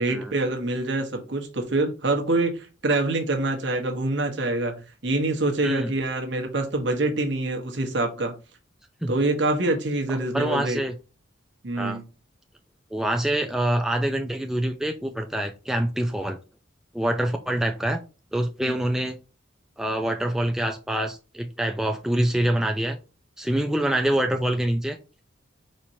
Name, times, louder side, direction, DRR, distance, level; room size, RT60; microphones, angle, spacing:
voice 1, 0.0-8.3 9.1-10.8 11.6-12.0 18.6-18.7, right 2 dB, 60° right, 1.1 m, -25 dB
voice 2, 10.1-10.9 11.8-12.0 12.9-16.4 16.9-18.0 18.3-19.2 19.8-23.0 23.4-25.0, right 1 dB, 5° right, 0.3 m, -25 dB
4.3 x 4.3 x 2.6 m
head